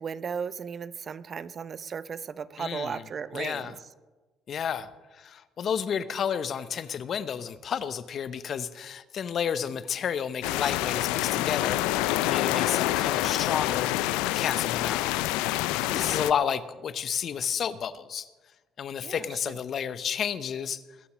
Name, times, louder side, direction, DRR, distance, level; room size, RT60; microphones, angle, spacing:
voice 1, 0.0-3.7 15.7-16.2 19.0-19.5, right 6 dB, 45° right, 16 dB, 0.6 m, -36 dB
voice 2, 2.6-3.0 3.3-3.7 4.5-15.1 15.9-18.3 18.8-20.8, left 8 dB, 55° left, 14 dB, 0.8 m, -31 dB
sound 1, 10.4-16.3, left 16 dB, 80° left, 0.4 m, -27 dB
21.0 x 7.1 x 6.2 m, 1.3 s
supercardioid pair, 65°, 0 cm